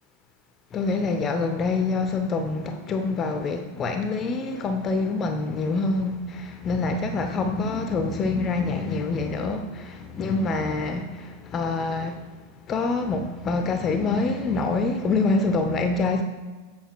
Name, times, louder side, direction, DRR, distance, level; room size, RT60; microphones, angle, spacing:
voice 1, 0.7-12.3 12.7-16.2, left 3 dB, 25° left, 0.5 m, -26 dB
7.8 x 4.0 x 4.6 m
figure-of-eight pair, 90°, 0 cm